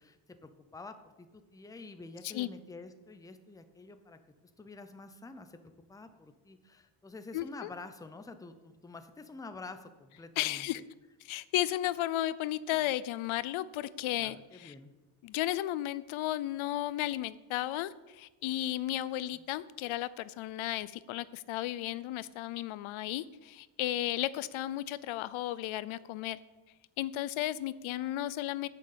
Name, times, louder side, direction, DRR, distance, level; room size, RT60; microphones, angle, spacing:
voice 1, 0.0-4.2 4.6-5.6 5.9-10.8 12.7-12.8 14.2-14.9 19.3-19.4, left 3 dB, 10° left, 8 dB, 0.5 m, -48 dB
voice 2, 7.3-7.7 10.4-10.8 11.2-14.7 15.2-26.4 27.0-28.7, left 14 dB, 85° left, 17 dB, 0.6 m, -34 dB
9.3 x 6.6 x 7.3 m, 1.2 s
cardioid pair, 155°, 47 cm